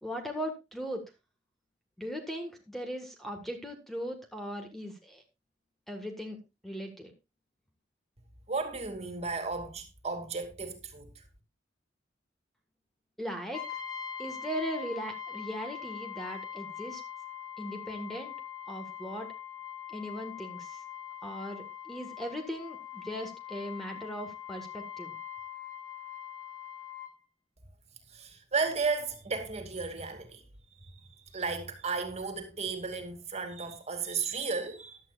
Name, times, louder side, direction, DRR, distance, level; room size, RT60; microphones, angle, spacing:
voice 1, 0.0-1.1 2.0-5.2 5.9-6.4 6.6-7.1 13.2-13.6 14.2-17.0 17.6-18.3 18.7-19.3 19.9-20.8 21.2-25.1, equal, ahead, 1.7 m, -38 dB
voice 2, 8.5-11.2 28.1-30.4 30.8-35.0, right 4 dB, 35° right, 2.4 m, -34 dB
Brass instrument, 13.5-27.2, left 9 dB, 25° left, 2.4 m, -42 dB
15.0 x 11.5 x 2.5 m
head